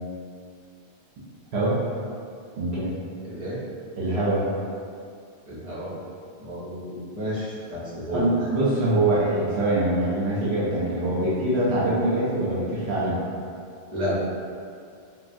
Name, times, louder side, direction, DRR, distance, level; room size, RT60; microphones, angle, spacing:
voice 1, 1.5-1.8 2.6-2.9 4.0-4.5 8.1-13.2, right 1 dB, 75° right, -8 dB, 0.8 m, -23 dB
voice 2, 3.2-3.6 5.5-5.9 6.4-8.2 13.9-14.2, equal, 30° right, -10 dB, 0.9 m, -31 dB
3.1 x 2.3 x 2.5 m, 2.3 s
omnidirectional pair, 1.1 m